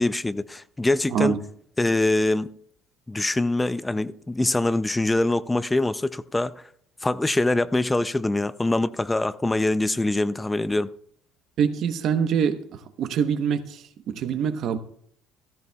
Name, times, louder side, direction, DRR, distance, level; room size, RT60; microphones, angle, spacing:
voice 1, 0.0-1.3 1.8-2.5 3.1-6.5 7.0-10.9, left 2 dB, 10° left, 0.4 m, -24 dB
voice 2, 11.6-14.8, right 7 dB, 60° right, 0.9 m, -25 dB
15.0 x 13.5 x 2.3 m
supercardioid pair, 95°, 0 cm